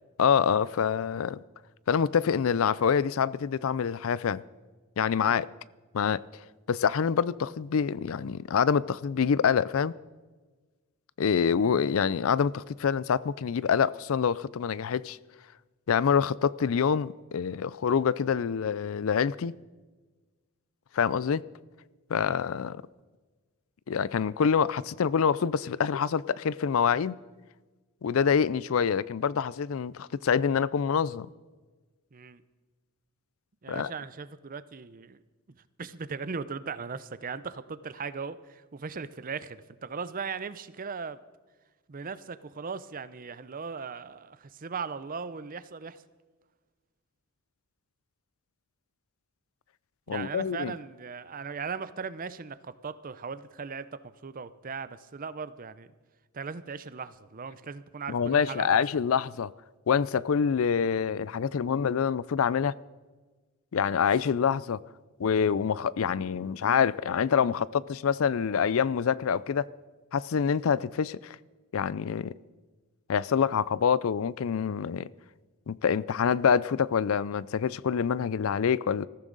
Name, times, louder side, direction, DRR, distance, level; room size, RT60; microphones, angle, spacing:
voice 1, 0.2-1.4 1.9-4.4 5.0-5.5 5.9-6.4 6.7-9.9 11.2-15.2 15.9-19.5 20.9-21.4 22.1-22.8 23.9-27.2 28.0-31.3 33.7-33.9 50.1-50.7 58.1-59.5 59.9-62.7 63.7-64.8 65.2-69.7 70.1-71.4 71.7-72.3 73.1-75.1 75.7-79.1, left 7 dB, 65° left, 0.4 m, -26 dB
voice 2, 32.1-32.4 33.6-35.2 35.8-41.2 41.9-46.0 50.1-55.9 56.3-58.8, right 5 dB, 40° right, 0.6 m, -38 dB
20.5 x 14.5 x 3.9 m
head